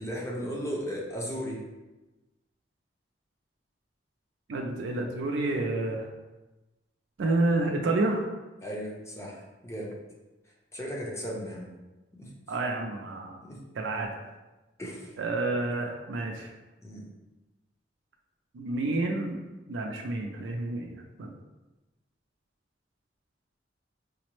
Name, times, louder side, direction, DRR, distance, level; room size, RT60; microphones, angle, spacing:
voice 1, 0.0-1.6 8.6-10.0 10.7-11.7 12.2-12.3 13.4-13.6 14.8-15.1 16.8-17.1, equal, 15° left, -3 dB, 0.6 m, -36 dB
voice 2, 4.5-6.1 7.2-8.3 12.5-13.4 13.7-14.1 15.2-16.5 18.5-19.4 19.7-21.3, right 2 dB, 90° right, 1 dB, 0.4 m, -29 dB
4.9 x 2.0 x 3.0 m, 1.1 s
head